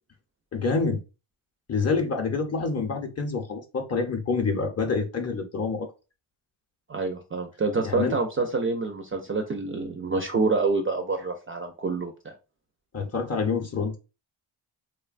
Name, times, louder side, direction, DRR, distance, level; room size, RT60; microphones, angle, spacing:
voice 1, 0.5-1.0 1.7-5.9 7.8-8.1 12.9-14.0, left 4 dB, 30° left, 0.6 m, -27 dB
voice 2, 6.9-12.3, right 3 dB, 30° right, 0.4 m, -27 dB
2.9 x 2.2 x 2.4 m
cardioid pair, 85°, 49 cm